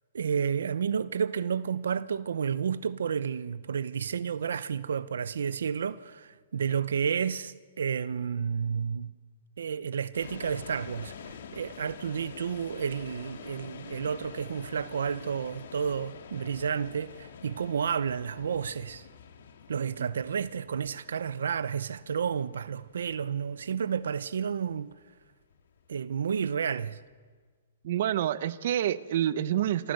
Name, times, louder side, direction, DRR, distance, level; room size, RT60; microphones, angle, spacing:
voice 1, 0.1-9.1 9.6-19.1 19.7-24.9 25.9-27.0, right 7 dB, 90° right, 0.8 m, -31 dB
sound 1, 10.1-27.1, left 6 dB, 70° left, 3.2 m, -48 dB
voice 2, 19.8-20.1 27.8-29.9, right 11 dB, 55° right, 1.0 m, -28 dB
27.0 x 26.5 x 7.9 m
hypercardioid pair, 155°, 0 cm